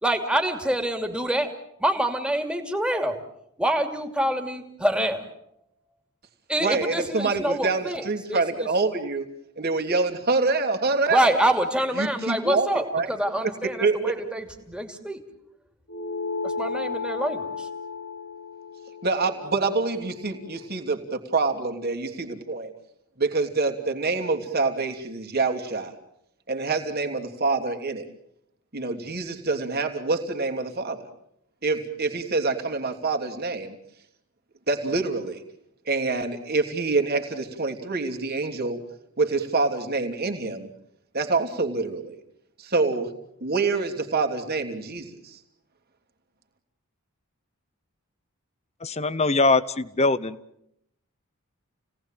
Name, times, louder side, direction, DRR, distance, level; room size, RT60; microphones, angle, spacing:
voice 1, 0.0-1.5 1.8-3.2 3.6-5.2 6.5-8.7 11.1-15.2 16.4-17.7, right 1 dB, 5° right, 4 dB, 2.8 m, -26 dB
voice 2, 6.6-9.2 9.6-11.4 12.0-13.1 13.6-14.1 19.0-22.7 23.2-25.9 26.5-28.1 28.7-31.1 31.6-33.8 34.7-35.4 35.9-38.8 39.2-40.7 41.1-42.2 42.6-43.1 43.4-45.4, right 3 dB, 45° right, 4 dB, 3.0 m, -26 dB
sound 1, 15.9-20.7, left 4 dB, 70° left, 3.8 m, -34 dB
voice 3, 48.8-50.4, left 3 dB, 30° left, 17 dB, 0.9 m, -22 dB
29.5 x 18.5 x 9.1 m, 0.77 s
head